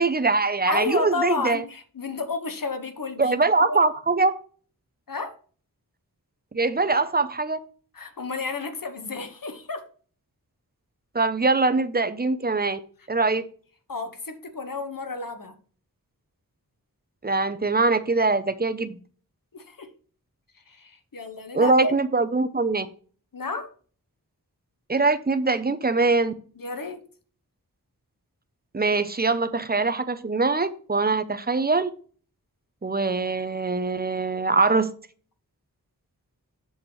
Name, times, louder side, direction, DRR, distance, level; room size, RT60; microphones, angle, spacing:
voice 1, 0.0-1.6 3.2-4.3 6.5-7.6 11.1-12.8 13.1-13.5 17.2-19.0 21.5-22.9 24.9-26.3 28.7-31.9 32.8-34.9, right 3 dB, 25° right, 0.7 m, -22 dB
voice 2, 0.7-3.4 3.7-3.8 5.1-5.4 7.9-9.9 13.9-15.5 19.5-19.9 20.7-21.9 23.3-23.7 26.6-27.0, left 4 dB, 65° left, 1.2 m, -31 dB
7.5 x 6.6 x 3.2 m
wide cardioid pair, 65°, 37 cm